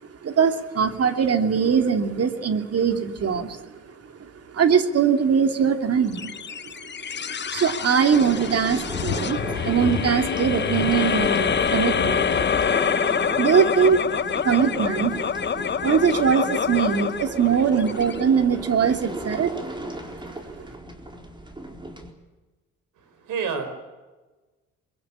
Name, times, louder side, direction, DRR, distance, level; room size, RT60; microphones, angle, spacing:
voice 1, 0.2-3.6 3.9-4.0 4.2-6.4 6.8-6.9 7.5-12.6 13.2-15.2 15.6-19.6 20.5-20.7, right 7 dB, 55° right, 6 dB, 2.8 m, -22 dB
sound 1, 6.1-18.8, left 7 dB, 35° left, 0.9 m, -27 dB
sound 2, 8.1-22.1, right 1 dB, 15° right, 4.2 m, -36 dB
sound 3, 8.5-12.8, left 7 dB, 60° left, 2.3 m, -31 dB
voice 2, 23.0-23.7, right 6 dB, 85° right, 8 dB, 5.4 m, -29 dB
23.0 x 22.0 x 8.7 m, 1.2 s
cardioid pair, 90°, 30 cm